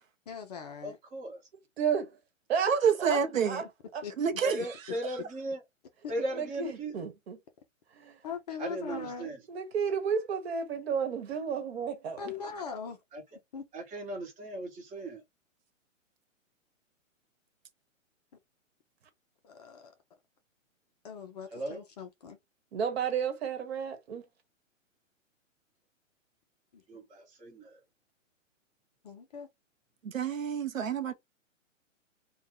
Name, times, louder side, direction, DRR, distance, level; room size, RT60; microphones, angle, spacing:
voice 1, 0.3-1.0 4.0-4.1 6.0-6.1 8.2-9.3 12.2-13.0 13.5-13.7 19.4-19.9 21.0-22.4 26.7-26.8 29.0-29.5, left 6 dB, 35° left, 0.5 m, -40 dB
voice 2, 0.8-1.4 4.4-5.6 6.1-6.9 8.6-9.4 13.1-13.2 13.7-15.2 21.5-21.8 26.9-27.8, right 1 dB, 20° right, 1.2 m, -37 dB
voice 3, 1.8-2.2 2.5-2.7 3.0-3.6 3.9-4.0 6.3-7.4 7.9-8.2 9.5-12.2 22.7-24.2, right 6 dB, 50° right, 1.2 m, -32 dB
voice 4, 2.7-3.6 4.2-4.6 30.0-31.1, right 7 dB, 80° right, 0.7 m, -28 dB
2.5 x 2.3 x 3.7 m
hypercardioid pair, 130°, 39 cm